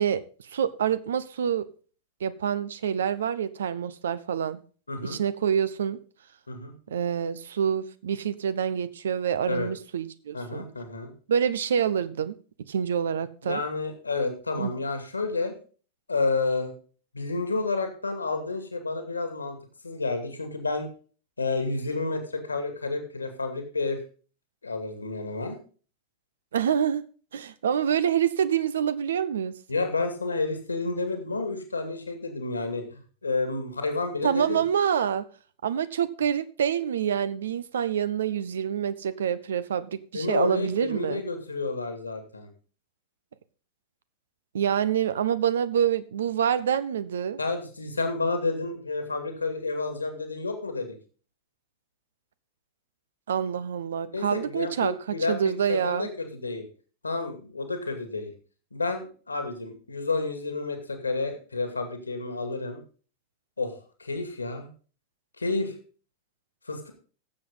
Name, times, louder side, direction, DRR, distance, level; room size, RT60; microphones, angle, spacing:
voice 1, 0.0-1.7 2.2-4.6 5.0-6.0 6.9-10.6 11.3-13.6 14.6-14.7 26.5-27.0 27.3-29.6 34.2-35.3 35.6-41.2 44.5-47.4 53.3-56.1, right 8 dB, 65° right, 0.7 m, -27 dB
voice 2, 4.9-5.2 6.5-6.7 9.5-9.7 10.3-11.1 13.4-15.5 16.1-16.7 17.1-19.6 19.8-20.9 21.4-24.0 24.6-25.6 29.7-34.6 40.1-42.5 47.4-50.9 54.1-56.6 57.0-58.3 58.7-62.8 63.6-64.7 65.4-65.8 66.7-66.9, left 3 dB, 80° left, 2.3 m, -30 dB
15.0 x 7.6 x 3.9 m
figure-of-eight pair, 90°, 0 cm